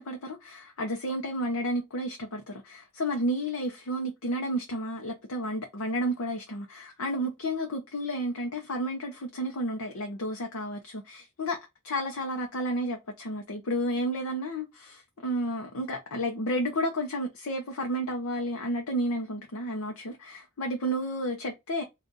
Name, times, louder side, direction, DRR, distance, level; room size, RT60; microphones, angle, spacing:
voice 1, 0.0-11.6 11.8-21.8, equal, 75° left, 0.7 m, -31 dB
3.7 x 2.5 x 3.9 m
head